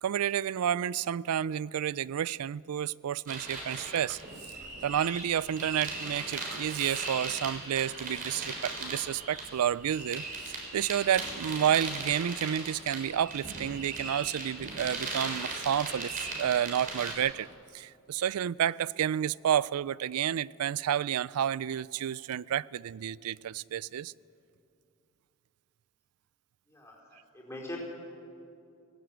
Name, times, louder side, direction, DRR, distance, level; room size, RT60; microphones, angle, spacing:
voice 1, 0.0-4.2 4.8-17.5 17.7-24.1, right 9 dB, 85° right, 0.4 m, -30 dB
sound 1, 3.3-17.1, right 3 dB, 40° right, 4.0 m, -38 dB
voice 2, 26.7-27.8, left 1 dB, 15° left, 4.6 m, -43 dB
19.0 x 17.5 x 8.1 m
head